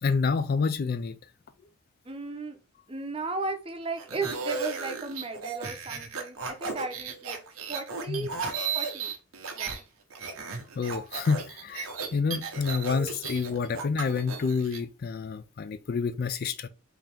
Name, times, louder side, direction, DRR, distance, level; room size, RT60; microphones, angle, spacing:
voice 1, 0.0-1.2 8.1-8.3 10.8-16.7, left 5 dB, 45° left, 0.3 m, -28 dB
voice 2, 2.0-2.6 2.9-7.4 7.7-8.3 8.7-9.1 9.5-9.8, right 3 dB, 25° right, 0.7 m, -35 dB
sound 1, 4.0-9.8 10.1-14.8, right 5 dB, 90° right, 0.9 m, -35 dB
3.8 x 2.9 x 3.3 m
head